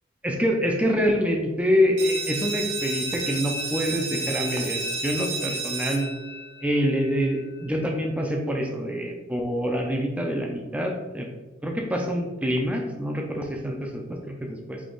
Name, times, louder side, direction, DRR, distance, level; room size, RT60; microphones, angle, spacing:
voice 1, 0.2-6.1 6.6-11.3 11.6-14.8, equal, 5° right, 1 dB, 0.5 m, -26 dB
sound 1, 2.0-7.4, right 3 dB, 65° right, 1.2 m, -31 dB
3.6 x 2.8 x 3.8 m, 1.1 s
head